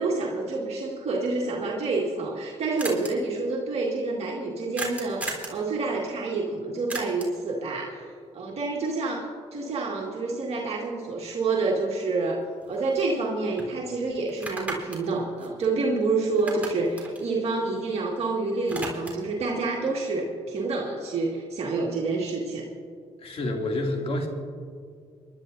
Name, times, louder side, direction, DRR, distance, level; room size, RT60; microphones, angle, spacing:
voice 1, 0.0-22.7, right 3 dB, 55° right, -2 dB, 1.9 m, -28 dB
sound 1, 2.1-2.2 2.4-2.5 2.8-3.1 4.8-5.6 6.9-7.4 11.6-11.7 12.1-13.3 13.6-13.7 14.3-16.1 16.3-18.2 18.5-19.3, right 2 dB, 10° right, 3.8 m, -36 dB
voice 2, 23.2-24.3, left 1 dB, 50° left, 1 dB, 2.5 m, -28 dB
28.5 x 11.5 x 2.6 m, 2.1 s
supercardioid pair, 60°, 13 cm